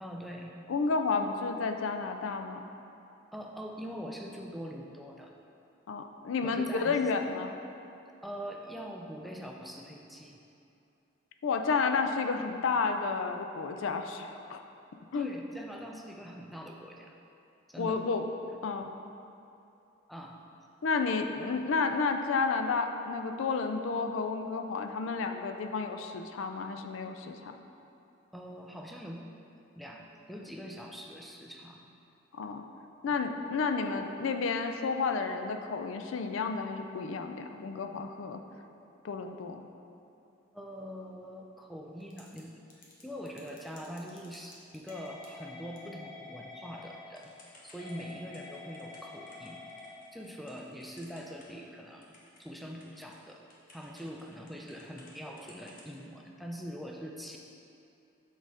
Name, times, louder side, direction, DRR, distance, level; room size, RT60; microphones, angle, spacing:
voice 1, 0.0-0.5 3.3-5.3 6.4-7.0 8.2-10.4 15.1-17.1 17.7-18.0 20.1-20.4 28.3-29.2 29.8-31.9 33.1-33.2 40.5-47.3 47.6-49.6 50.1-52.1 52.4-53.4 53.7-57.4, equal, ahead, 0 dB, 0.3 m, -43 dB
voice 2, 0.7-2.6 5.9-7.5 11.4-14.6 15.1-15.3 17.8-18.2 18.6-18.9 20.8-27.5 32.3-32.6 33.0-38.4 39.0-39.6, left 4 dB, 70° left, 6 dB, 0.4 m, -31 dB
Typing / Telephone, 42.0-42.4 42.7-51.7 52.0-55.1 55.4-55.9, left 3 dB, 45° left, 0.9 m, -49 dB
6.2 x 4.0 x 4.8 m, 2.7 s
head